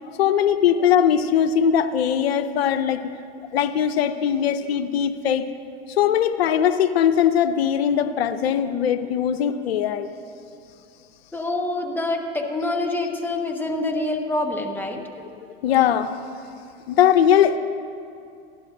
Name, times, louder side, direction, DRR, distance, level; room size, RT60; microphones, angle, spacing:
voice 1, 0.2-3.0 3.5-5.5 6.0-10.1 15.6-16.1 16.9-17.6, left 9 dB, 85° left, 10 dB, 0.6 m, -20 dB
voice 2, 11.3-15.0, left 2 dB, 5° left, 3 dB, 1.3 m, -26 dB
16.5 x 12.0 x 2.6 m, 2.5 s
hypercardioid pair, 95°, 30 cm